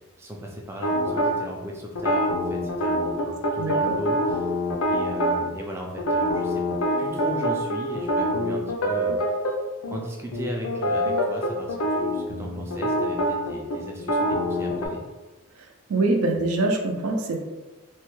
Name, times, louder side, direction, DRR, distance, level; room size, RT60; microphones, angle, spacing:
voice 1, 0.2-4.5 4.9-6.7 7.0-9.2 9.9-15.1, equal, 10° right, 0 dB, 0.3 m, -36 dB
sound 1, 0.8-1.3 2.0-5.4 6.0-9.5 9.8-10.0 10.3-14.9, equal, 85° left, 0.5 m, -25 dB
voice 2, 3.6-4.0 15.9-17.4, right 2 dB, 85° right, 2 dB, 0.5 m, -24 dB
3.1 x 2.2 x 3.0 m, 1.2 s
head